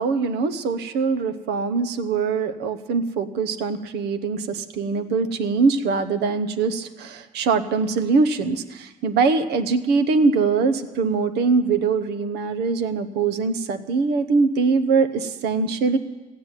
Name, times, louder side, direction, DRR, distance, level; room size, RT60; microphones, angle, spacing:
voice 1, 0.0-16.0, right 4 dB, 80° right, 11 dB, 1.1 m, -22 dB
14.5 x 9.5 x 9.0 m, 1.2 s
cardioid pair, 110°, 17 cm